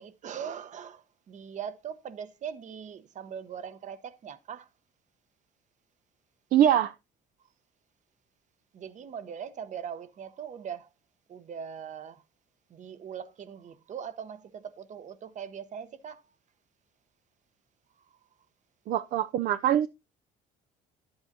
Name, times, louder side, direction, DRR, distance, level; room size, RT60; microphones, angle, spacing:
voice 1, 0.0-4.7 8.7-10.9 11.3-12.2 12.7-16.3 18.0-18.2, right 8 dB, 45° right, 0.9 m, -41 dB
voice 2, 6.5-6.9 18.9-19.9, right 10 dB, 60° right, 0.5 m, -23 dB
10.5 x 7.8 x 2.7 m
cardioid pair, 110°, 17 cm